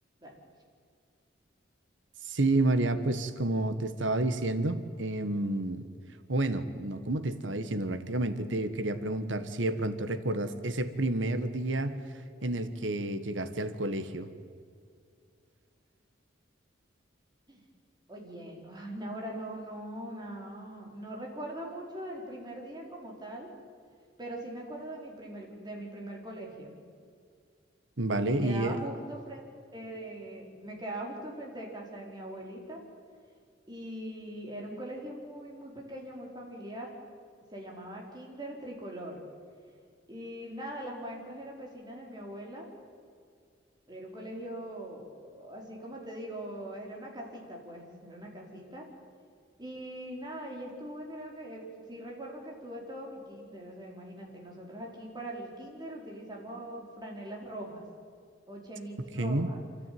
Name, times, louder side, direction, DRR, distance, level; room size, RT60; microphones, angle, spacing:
voice 1, 2.2-5.8 6.3-12.0 12.4-14.3 28.0-28.8 59.2-59.5, right 2 dB, 85° right, 11 dB, 1.4 m, -30 dB
voice 2, 18.1-23.5 24.2-26.7 28.2-29.4 29.7-32.8 33.7-36.9 37.5-39.2 40.1-42.7 43.9-48.9 49.6-57.8 58.5-59.6, right 1 dB, 25° right, -1 dB, 4.4 m, -41 dB
28.0 x 13.0 x 9.4 m, 2.3 s
head